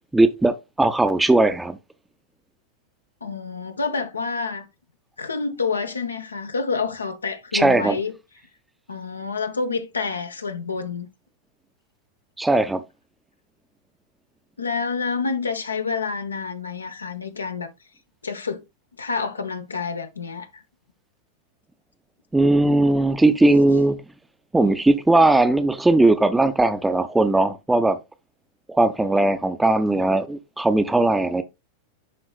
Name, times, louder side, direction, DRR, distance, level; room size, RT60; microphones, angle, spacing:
voice 1, 0.1-1.8 7.5-8.0 12.4-12.8 22.3-24.0 24.5-28.0 28.7-31.4, right 2 dB, 5° right, 0.6 m, -18 dB
voice 2, 3.2-4.7 5.2-8.1 8.9-11.1 14.6-17.7 18.2-18.6 19.0-20.6, left 4 dB, 75° left, 0.7 m, -28 dB
11.0 x 3.9 x 2.3 m
figure-of-eight pair, 90°, 0 cm